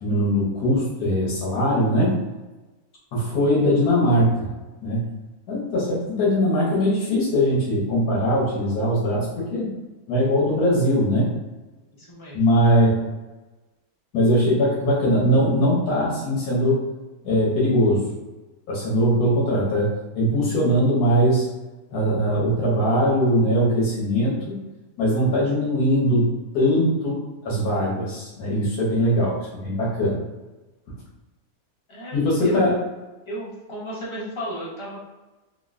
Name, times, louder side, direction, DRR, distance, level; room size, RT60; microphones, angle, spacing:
voice 1, 0.0-2.2 3.1-4.5 4.8-5.0 5.5-9.7 10.1-11.3 12.3-13.1 14.1-16.8 17.2-18.0 18.7-21.5 21.9-24.6 25.0-27.2 27.4-30.2 32.1-32.8, equal, 80° left, -7 dB, 1.4 m, -21 dB
voice 2, 12.0-12.4 31.9-32.8 33.3-35.0, right 1 dB, 35° left, -6 dB, 0.4 m, -34 dB
3.6 x 2.0 x 2.4 m, 1.1 s
omnidirectional pair, 1.6 m